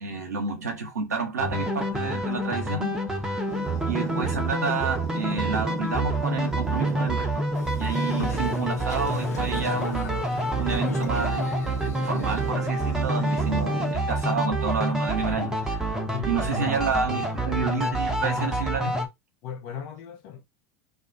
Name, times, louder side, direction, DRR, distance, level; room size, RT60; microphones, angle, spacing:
voice 1, 0.0-3.0 3.9-7.5 7.8-10.2 10.6-11.4 12.0-15.8 16.2-19.0, right 4 dB, 90° right, 0.7 m, -30 dB
sound 1, 1.4-19.1, right 1 dB, 5° right, 0.7 m, -27 dB
sound 2, 3.5-14.0, right 9 dB, 35° right, 0.4 m, -37 dB
Boat Water vehicle, 7.6-12.5, left 4 dB, 80° left, 0.8 m, -38 dB
voice 2, 16.1-17.8 19.4-20.4, left 8 dB, 55° left, 0.7 m, -38 dB
2.3 x 2.2 x 2.6 m
hypercardioid pair, 90°, 9 cm